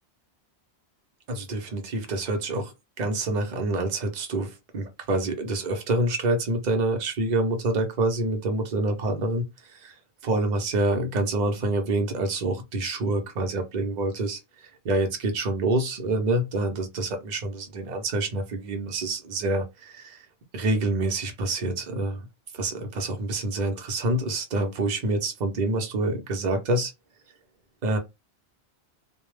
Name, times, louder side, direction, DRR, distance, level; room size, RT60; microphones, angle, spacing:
voice 1, 1.3-2.7 3.0-9.4 9.7-9.9 10.2-14.4 14.8-20.2 20.5-22.3 22.6-26.9 27.8-28.0, right 2 dB, 45° right, 0.7 m, -27 dB
2.2 x 2.0 x 3.1 m
omnidirectional pair, 1.1 m